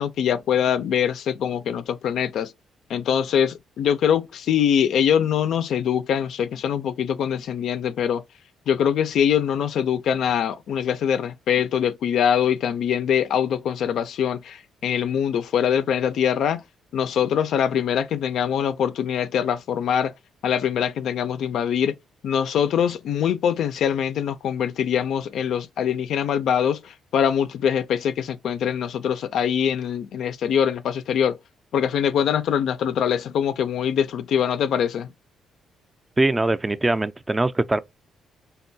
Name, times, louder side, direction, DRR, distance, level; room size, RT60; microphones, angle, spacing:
voice 1, 0.0-2.5 2.9-8.2 8.7-16.6 16.9-20.1 20.4-22.0 22.2-31.4 31.7-35.1, left 8 dB, 70° left, 0.3 m, -23 dB
voice 2, 36.2-37.8, right 2 dB, 15° right, 0.3 m, -22 dB
3.6 x 2.2 x 2.6 m
cardioid pair, 90°, 0 cm